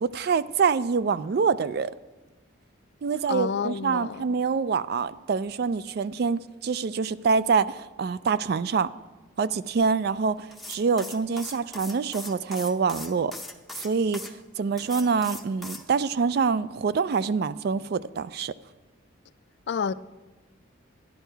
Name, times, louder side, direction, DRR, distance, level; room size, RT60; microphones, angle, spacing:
voice 1, 0.0-1.9 3.0-8.9 9.4-13.3 13.8-14.2 14.6-18.5, right 5 dB, 55° right, 0.3 m, -25 dB
voice 2, 3.3-4.2 19.7-19.9, left 6 dB, 55° left, 0.3 m, -29 dB
sound 1, 10.5-14.3 14.8-15.9, left 2 dB, ahead, 0.6 m, -40 dB
11.0 x 11.0 x 4.5 m
head